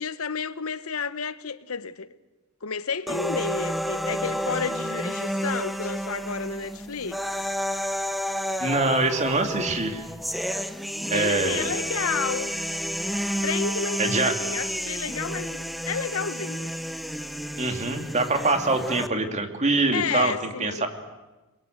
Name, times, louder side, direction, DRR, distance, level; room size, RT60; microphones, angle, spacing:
voice 1, 0.0-2.2 2.6-7.2 11.1-12.6 13.4-16.7 19.9-20.9, left 5 dB, 75° left, 1.1 m, -31 dB
sound 1, 3.1-19.1, equal, ahead, 0.9 m, -30 dB
voice 2, 8.6-10.0 11.1-11.7 14.0-14.3 17.6-20.3 20.6-20.9, right 3 dB, 30° right, 2.6 m, -24 dB
30.0 x 21.5 x 8.0 m
head